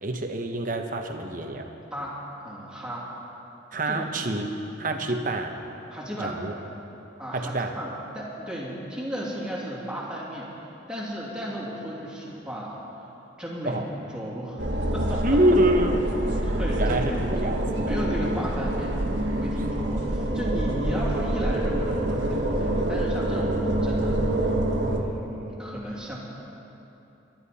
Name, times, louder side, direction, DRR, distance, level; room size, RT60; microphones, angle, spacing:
voice 1, 0.0-1.7 3.7-4.5 4.8-5.6 6.2-6.5 7.3-7.7 13.6-13.8 15.2-16.0 16.8-17.6 17.8-17.9, right 1 dB, 45° right, 4 dB, 1.0 m, -26 dB
voice 2, 1.9-3.1 3.9-4.1 5.9-6.4 7.2-12.8 13.4-15.3 16.4-24.5 24.8-26.2, equal, 5° right, -6 dB, 2.7 m, -35 dB
sound 1, 14.6-25.0, right 1 dB, 70° right, 1.5 m, -26 dB
24.0 x 12.0 x 4.2 m, 3.0 s
head